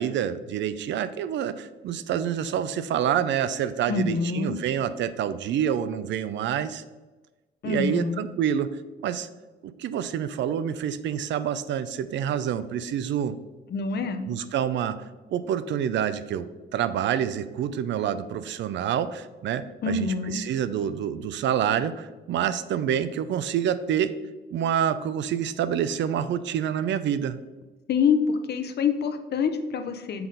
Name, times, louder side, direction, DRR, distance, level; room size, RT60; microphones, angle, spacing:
voice 1, 0.0-6.8 7.6-8.7 9.0-9.3 9.6-13.4 14.3-15.0 15.3-24.1 24.5-27.4, right 9 dB, 70° right, 14 dB, 0.5 m, -27 dB
voice 2, 3.9-4.6 7.6-8.2 13.7-14.3 19.8-20.4 27.9-30.3, left 5 dB, 55° left, 8 dB, 0.7 m, -26 dB
6.9 x 4.0 x 3.8 m, 1.2 s
cardioid pair, 90°, 20 cm